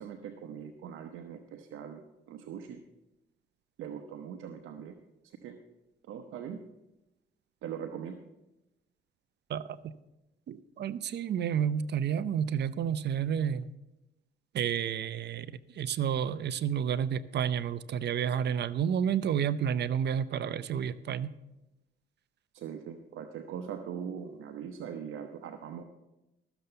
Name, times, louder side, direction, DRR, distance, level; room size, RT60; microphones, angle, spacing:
voice 1, 0.0-2.0 2.3-2.8 3.8-4.9 5.4-5.6 6.1-6.6 7.6-8.2 22.5-25.8, right 8 dB, 80° right, 5 dB, 0.9 m, -41 dB
voice 2, 9.5-9.9 10.5-13.7 14.5-21.3, right 8 dB, 60° right, 16 dB, 0.6 m, -30 dB
13.5 x 7.0 x 6.7 m, 0.97 s
cardioid pair, 90°, 20 cm